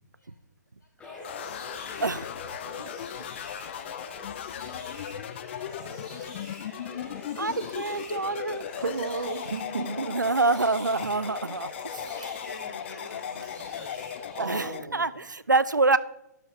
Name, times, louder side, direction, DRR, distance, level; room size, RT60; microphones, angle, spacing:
sound 1, 1.0-14.6, left 2 dB, 10° left, 3.0 m, -44 dB
sound 2, 1.2-14.8, left 10 dB, 40° left, 0.6 m, -38 dB
voice 1, 2.0-2.6 7.4-8.6 9.9-12.3 14.4-16.0, right 3 dB, 85° right, 17 dB, 0.5 m, -27 dB
voice 2, 8.8-10.1 14.4-15.2, right 4 dB, 70° right, 4 dB, 1.3 m, -33 dB
voice 3, 11.9-14.0, left 1 dB, 80° left, -1 dB, 4.2 m, -46 dB
11.5 x 11.5 x 3.1 m, 0.86 s
figure-of-eight pair, 130°, 10 cm